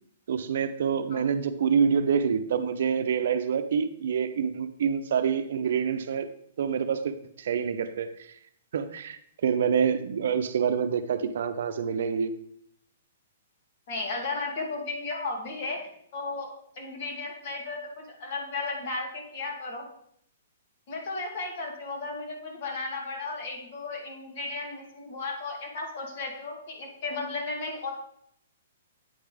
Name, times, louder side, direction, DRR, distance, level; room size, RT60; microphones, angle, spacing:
voice 1, 0.3-6.3 6.6-8.3 8.7-12.3, right 7 dB, 65° right, 10 dB, 0.6 m, -27 dB
voice 2, 13.9-15.8 16.1-19.9 20.9-27.9, left 3 dB, 50° left, 1 dB, 2.0 m, -34 dB
8.6 x 3.5 x 5.1 m, 0.68 s
hypercardioid pair, 160°, 0 cm